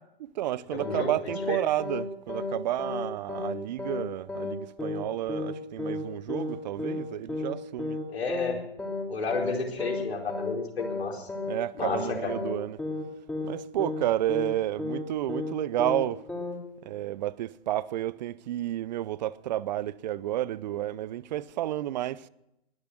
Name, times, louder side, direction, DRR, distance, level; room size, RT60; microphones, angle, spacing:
voice 1, 0.2-8.0 11.5-12.8 13.4-16.2 16.8-22.3, right 13 dB, 45° right, 0.6 m, -31 dB
voice 2, 0.7-1.1 1.5-1.6 8.1-8.6 9.1-11.3 11.8-12.3, left 4 dB, 75° left, 4.6 m, -31 dB
sound 1, 0.8-1.0 1.3-1.5 1.8-2.0 2.3-2.5 2.8-3.0 3.3-3.5 3.8-4.0 4.3-4.5 4.8-5.0 5.3-5.5 5.8-6.0 6.3-6.5 6.8-7.0 7.3-7.5 7.8-8.0 8.3-8.5 8.8-9.0 9.3-9.5 9.8-10.0 10.3-10.5 10.8-11.0 11.3-11.5 11.8-12.0 12.3-12.5 12.8-13.0 13.3-13.5 13.8-14.0 14.3-14.5 14.8-15.0 15.3-15.5 15.8-16.0 16.3-16.5, left 3 dB, 5° left, 2.7 m, -33 dB
20.5 x 10.5 x 6.2 m
figure-of-eight pair, 125°, 32 cm